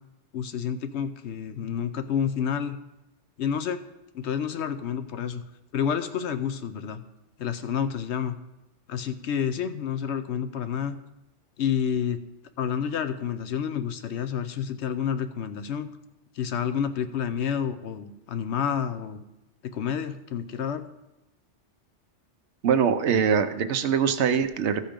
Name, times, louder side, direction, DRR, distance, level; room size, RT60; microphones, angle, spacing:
voice 1, 0.3-2.8 3.4-3.8 4.1-5.4 5.7-7.0 7.4-8.4 8.9-11.0 11.6-12.2 12.6-15.9 16.3-19.2 19.6-20.9, left 8 dB, 70° left, 10 dB, 0.9 m, -29 dB
voice 2, 22.6-24.9, right 7 dB, 70° right, 9 dB, 1.0 m, -23 dB
14.0 x 5.3 x 5.1 m, 0.95 s
omnidirectional pair, 1.2 m